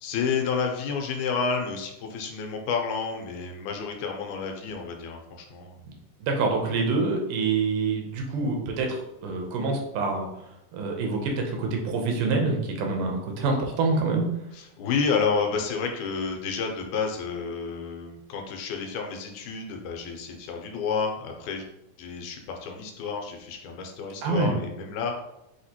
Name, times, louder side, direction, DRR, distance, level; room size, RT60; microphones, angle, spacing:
voice 1, 0.0-5.8 14.6-21.6 22.0-25.2, left 5 dB, 85° left, 2 dB, 2.1 m, -30 dB
voice 2, 6.2-10.3 10.7-14.3 24.2-24.6, right 3 dB, 85° right, 1 dB, 2.4 m, -26 dB
6.1 x 2.8 x 2.9 m, 0.86 s
omnidirectional pair, 3.6 m